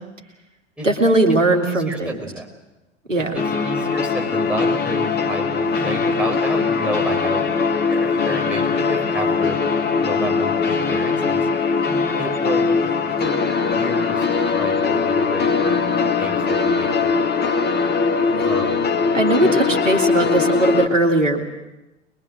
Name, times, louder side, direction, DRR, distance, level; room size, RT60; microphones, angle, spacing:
voice 1, 0.8-2.3 3.1-3.3 18.3-18.4 19.1-21.5, right 2 dB, 90° right, 2 dB, 2.3 m, -19 dB
voice 2, 1.6-2.5 3.2-9.6 10.0-11.5 12.2-12.9 13.2-13.4 13.6-14.3 14.5-15.8 16.2-17.1 17.4-17.7 18.4-18.9 19.4-19.6, right 1 dB, 5° right, 0 dB, 5.2 m, -31 dB
sound 1, 3.4-20.9, left 5 dB, 25° left, 2.0 m, -21 dB
24.0 x 21.5 x 7.6 m, 1.0 s
figure-of-eight pair, 80°, 37 cm